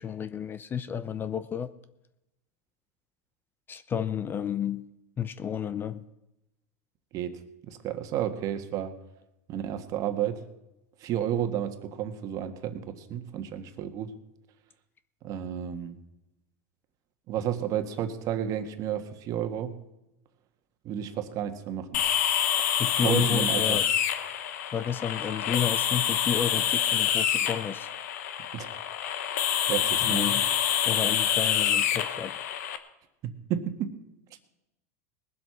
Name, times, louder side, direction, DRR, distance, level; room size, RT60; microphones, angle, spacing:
voice 1, 0.0-1.7 3.7-4.9 5.2-6.0 22.7-23.8 24.7-27.9 30.0-30.5 30.8-32.3, left 8 dB, 25° left, 14 dB, 0.6 m, -31 dB
voice 2, 7.1-8.9 9.5-10.4 11.0-14.1 15.2-16.0 17.3-19.8 20.8-22.0 23.0-23.8 28.5-28.7 29.7-30.3 33.2-34.0, right 10 dB, 45° right, 8 dB, 1.5 m, -31 dB
sound 1, 21.9-32.8, left 10 dB, 75° left, 1.2 m, -27 dB
20.0 x 7.8 x 5.8 m, 0.92 s
supercardioid pair, 120°, 9 cm